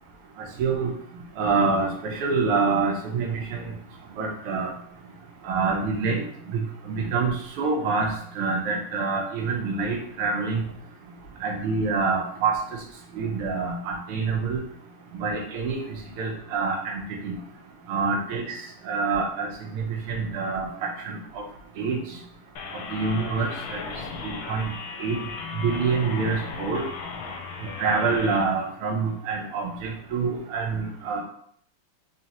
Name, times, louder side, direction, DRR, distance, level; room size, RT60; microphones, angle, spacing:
voice 1, 1.4-3.6 4.2-4.7 5.4-6.3 6.5-8.1 8.4-10.6 11.4-12.5 13.2-14.6 15.1-15.8 16.2-17.4 17.9-18.6 18.9-19.5 19.7-21.4 21.8-22.0 22.7-23.8 24.2-24.7 25.0-25.2 25.6-26.9 27.8-31.2, right 4 dB, 90° right, 0 dB, 1.7 m, -26 dB
sound 1, 22.6-28.4, left 5 dB, 75° left, 1.3 m, -36 dB
4.1 x 3.2 x 2.9 m, 0.65 s
omnidirectional pair, 2.4 m